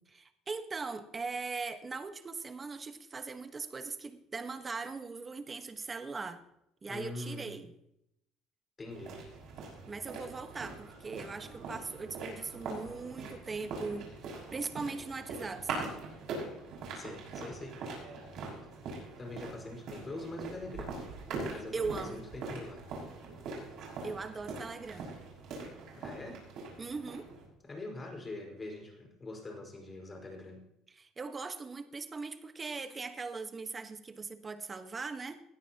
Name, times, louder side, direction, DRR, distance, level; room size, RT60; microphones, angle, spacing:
voice 1, 0.1-6.4 6.8-7.7 9.9-16.0 21.5-22.2 24.0-25.1 26.8-27.3 30.9-35.4, right 4 dB, 25° right, 9 dB, 1.3 m, -40 dB
voice 2, 6.9-7.5 8.8-9.2 16.9-17.8 19.2-21.0 21.4-22.8 25.9-26.4 27.6-30.6, left 2 dB, 25° left, 2 dB, 5.0 m, -43 dB
sound 1, 8.9-27.5, right 3 dB, 65° right, 6.1 m, -43 dB
19.5 x 13.5 x 3.0 m, 0.82 s
supercardioid pair, 90°, 0 cm